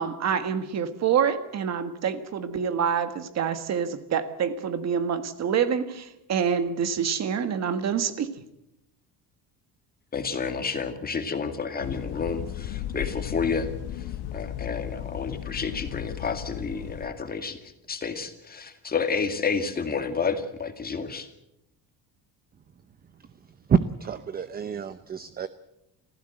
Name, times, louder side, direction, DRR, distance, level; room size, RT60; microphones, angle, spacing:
voice 1, 0.0-8.3, right 7 dB, 45° right, 10 dB, 1.7 m, -26 dB
voice 2, 10.1-21.3, left 5 dB, 25° left, 7 dB, 2.2 m, -30 dB
sound 1, 11.8-17.1, left 11 dB, 75° left, 1.6 m, -35 dB
voice 3, 23.7-25.5, right 7 dB, 25° right, 13 dB, 0.7 m, -27 dB
27.0 x 15.5 x 7.9 m, 0.86 s
cardioid pair, 150°, 38 cm